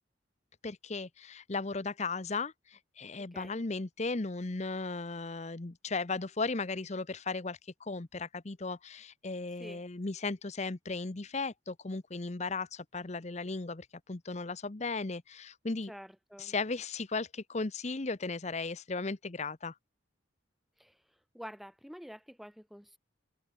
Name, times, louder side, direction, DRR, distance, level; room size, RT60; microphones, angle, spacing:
voice 1, 0.6-15.9 16.4-19.7, left 3 dB, 35° left, 0.8 m, -36 dB
voice 2, 3.2-3.6 9.6-9.8 15.9-16.5 20.8-21.0 21.3-23.0, equal, ahead, 1.2 m, -48 dB
head